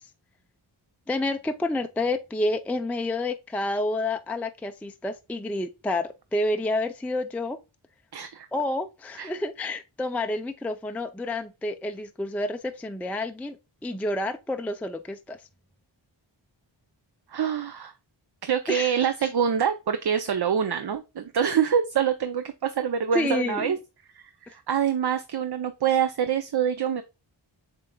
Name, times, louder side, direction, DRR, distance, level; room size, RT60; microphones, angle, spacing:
voice 1, 1.1-7.6 8.5-13.6 13.8-15.4 18.7-18.9 23.1-23.8, left 2 dB, 5° left, 0.4 m, -29 dB
voice 2, 8.1-8.5 9.2-9.3 17.3-17.9 18.4-23.8 24.2-27.0, right 8 dB, 55° right, 0.6 m, -25 dB
7.3 x 3.3 x 2.2 m
wide cardioid pair, 65°, 47 cm